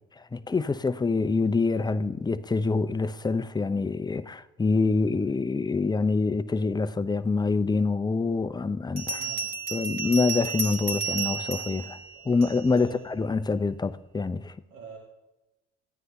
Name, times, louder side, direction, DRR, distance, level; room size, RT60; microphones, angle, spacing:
voice 1, 0.3-9.2 9.7-12.0 12.2-14.6, left 4 dB, 15° left, 0.6 m, -26 dB
Bell, 7.7-7.8 9.0-12.8, right 5 dB, 40° right, 1.6 m, -32 dB
voice 2, 9.1-9.5 12.1-12.3 12.7-13.1 14.7-15.0, right 5 dB, 80° right, 1.8 m, -43 dB
14.5 x 9.3 x 3.4 m
hypercardioid pair, 65°, 32 cm